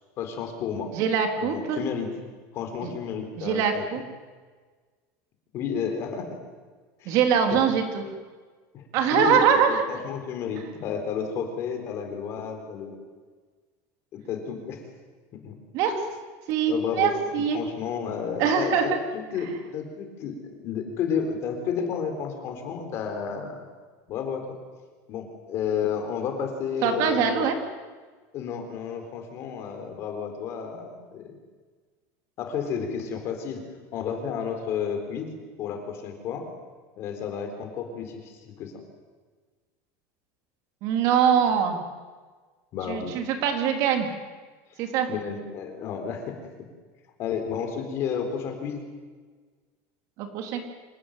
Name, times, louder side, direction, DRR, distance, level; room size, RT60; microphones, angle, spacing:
voice 1, 0.2-0.9 1.4-2.1 2.5-3.9 5.5-6.4 7.0-7.2 8.7-8.9 9.1-9.4 9.7-13.0 14.1-14.8 15.4-15.6 16.7-17.1 17.5-23.6 24.1-24.5 25.1-27.6 28.3-31.3 32.4-33.6 33.9-35.3 35.6-36.5 37.0-38.7 42.7-43.2 45.1-46.4 47.2-48.8, left 7 dB, 35° left, 5 dB, 4.1 m, -31 dB
voice 2, 0.9-1.8 2.8-2.9 3.4-4.0 7.1-8.0 8.9-9.8 15.7-16.0 16.5-17.6 18.4-19.0 26.8-27.6 40.8-41.8 42.9-44.1 44.8-45.1 50.2-50.7, right 7 dB, 45° right, 4 dB, 3.5 m, -23 dB
26.0 x 19.0 x 9.2 m, 1.4 s
cardioid pair, 175°, 8 cm